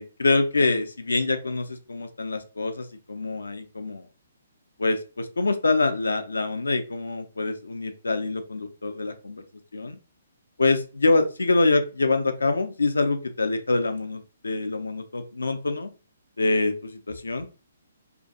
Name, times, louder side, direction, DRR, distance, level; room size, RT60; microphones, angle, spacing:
voice 1, 0.0-4.1 4.8-9.4 9.7-10.0 10.6-15.9 16.4-17.5, left 3 dB, 70° left, 8 dB, 0.4 m, -25 dB
2.5 x 2.3 x 2.6 m, 0.34 s
figure-of-eight pair, 130°, 0 cm